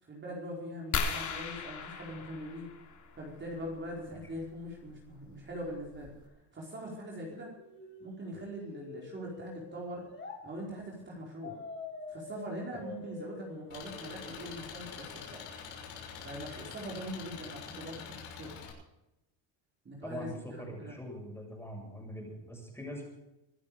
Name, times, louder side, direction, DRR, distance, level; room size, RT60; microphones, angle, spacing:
voice 1, 0.0-2.7 3.1-7.5 8.0-10.0 10.4-11.6 12.1-15.5 16.2-18.6 19.8-21.0, equal, 25° right, -2 dB, 4.8 m, -42 dB
sound 1, 0.9-3.3 4.9-5.1 5.7-5.8 6.0-6.3, left 5 dB, 45° left, 3.3 m, -36 dB
sound 2, 7.6-10.4 11.4-14.4, left 3 dB, 25° left, 3.9 m, -46 dB
Engine, 13.7-18.7, left 7 dB, 80° left, 6.5 m, -45 dB
voice 2, 20.0-23.0, equal, 5° left, 1 dB, 7.0 m, -43 dB
25.0 x 11.0 x 5.0 m, 0.92 s
cardioid pair, 130°, 42 cm